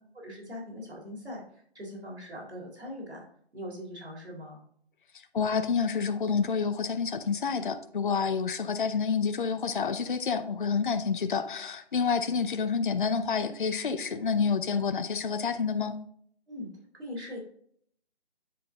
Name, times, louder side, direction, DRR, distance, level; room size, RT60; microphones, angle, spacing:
voice 1, 0.1-3.3 3.5-4.6 16.5-16.7 16.9-17.4, left 1 dB, 85° right, 0 dB, 3.5 m, -41 dB
voice 2, 5.3-16.0, left 5 dB, 50° left, 9 dB, 0.7 m, -28 dB
10.0 x 4.6 x 3.7 m, 0.64 s
figure-of-eight pair, 155°, 32 cm